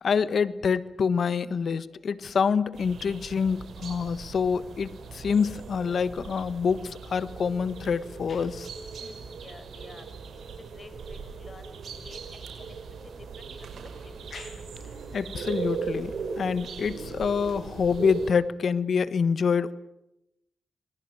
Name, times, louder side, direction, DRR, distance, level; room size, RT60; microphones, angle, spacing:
voice 1, 0.0-8.7 14.3-14.5 15.1-19.7, left 6 dB, 75° left, 16 dB, 1.3 m, -26 dB
sound 1, 2.7-18.3, right 5 dB, 80° right, 5.4 m, -39 dB
voice 2, 9.0-10.0 10.5-11.8 12.0-13.7 14.0-14.5, left 3 dB, 45° left, 10 dB, 5.1 m, -50 dB
27.0 x 20.0 x 9.1 m, 0.85 s
cardioid pair, 45°, 0 cm